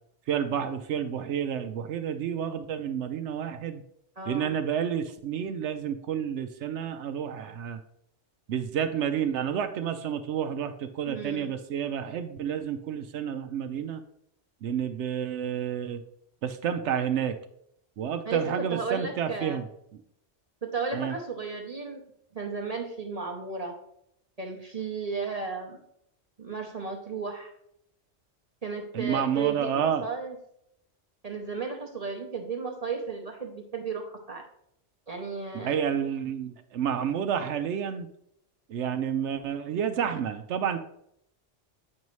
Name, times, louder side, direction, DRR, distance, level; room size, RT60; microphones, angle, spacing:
voice 1, 0.3-3.8 4.3-7.8 8.5-14.0 14.6-16.0 16.4-17.3 18.0-19.7 20.9-21.1 28.9-30.1 35.6-38.1 38.7-40.8, right 8 dB, 75° right, 8 dB, 0.9 m, -30 dB
voice 2, 4.2-4.6 11.1-11.5 18.3-19.6 20.6-22.0 22.3-23.7 24.4-25.8 26.4-27.5 28.6-30.3 31.2-34.4 35.1-35.7, right 4 dB, 35° right, 1 dB, 0.8 m, -34 dB
8.5 x 5.4 x 3.1 m, 0.74 s
omnidirectional pair, 1.2 m